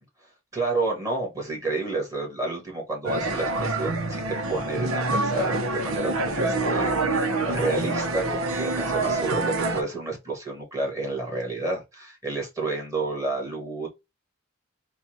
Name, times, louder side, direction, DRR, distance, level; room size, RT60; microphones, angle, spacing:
voice 1, 0.5-13.9, right 2 dB, 15° right, 1.9 m, -30 dB
sound 1, 3.1-9.8, right 2 dB, 85° right, 0.9 m, -26 dB
4.3 x 2.4 x 4.3 m
head